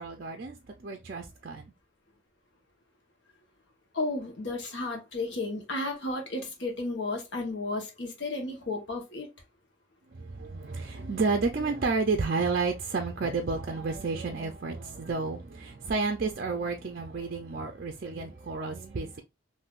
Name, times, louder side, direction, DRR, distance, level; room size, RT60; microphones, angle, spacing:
voice 1, 0.0-1.7 10.1-19.2, right 4 dB, 50° right, 0.4 m, -31 dB
voice 2, 3.9-9.3, left 2 dB, 65° left, 1.1 m, -33 dB
3.6 x 2.6 x 2.4 m
head